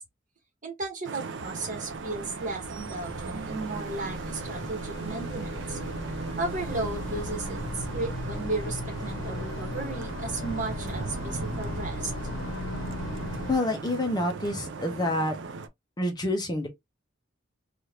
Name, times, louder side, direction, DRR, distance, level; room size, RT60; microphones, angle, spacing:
voice 1, 0.6-5.8 6.4-12.1, right 2 dB, 40° right, 1.1 m, -34 dB
Vehicle horn car horn honking / Traffic noise roadway noise, 1.0-15.7, right 4 dB, 60° right, 0.4 m, -38 dB
sound 1, 1.4-13.6, left 2 dB, 85° left, 0.7 m, -37 dB
voice 2, 13.5-15.4 16.0-16.7, left 1 dB, 20° left, 0.6 m, -27 dB
2.8 x 2.4 x 3.2 m
head